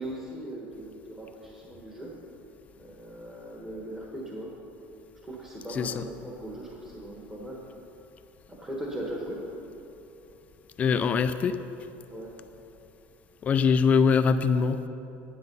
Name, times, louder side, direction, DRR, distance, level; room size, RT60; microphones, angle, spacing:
voice 1, 0.0-2.1 2.8-4.5 5.2-7.6 8.5-9.4 12.1-12.3, right 1 dB, 10° right, -3 dB, 1.2 m, -39 dB
voice 2, 5.7-6.0 10.8-11.6 13.4-14.9, left 5 dB, 25° left, 10 dB, 0.4 m, -23 dB
10.5 x 9.8 x 5.4 m, 2.9 s
cardioid pair, 155°, 5 cm